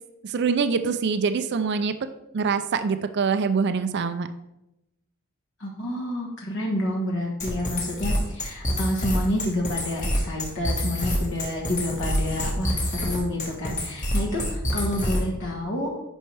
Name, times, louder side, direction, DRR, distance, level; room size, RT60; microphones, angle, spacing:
voice 1, 0.2-1.9 2.3-4.3, right 5 dB, 50° right, 10 dB, 0.4 m, -24 dB
voice 2, 5.6-15.9, left 1 dB, 55° left, -1 dB, 1.3 m, -29 dB
sound 1, 7.4-15.4, equal, 35° left, 1.5 m, -27 dB
9.8 x 5.4 x 3.3 m, 0.90 s
head